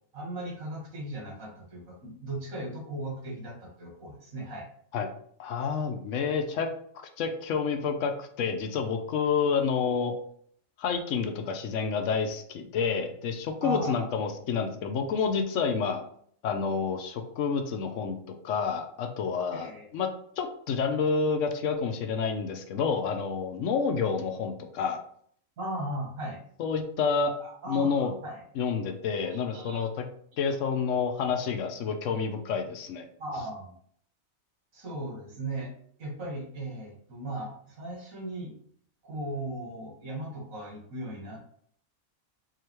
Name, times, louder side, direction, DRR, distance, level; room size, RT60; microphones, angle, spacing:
voice 1, 0.1-4.7 13.6-14.1 19.5-19.8 25.6-26.4 27.4-28.4 29.2-29.9 33.2-33.7 34.7-35.7 36.0-38.5 39.0-41.5, right 1 dB, 80° right, -2 dB, 1.7 m, -37 dB
voice 2, 5.4-6.7 7.2-10.1 10.8-16.0 16.4-18.2 18.4-20.1 20.4-25.0 26.6-27.3 27.7-28.1 28.6-30.0 30.4-33.1, left 5 dB, 70° left, 5 dB, 0.9 m, -29 dB
4.8 x 2.7 x 2.9 m, 0.63 s
omnidirectional pair, 1.4 m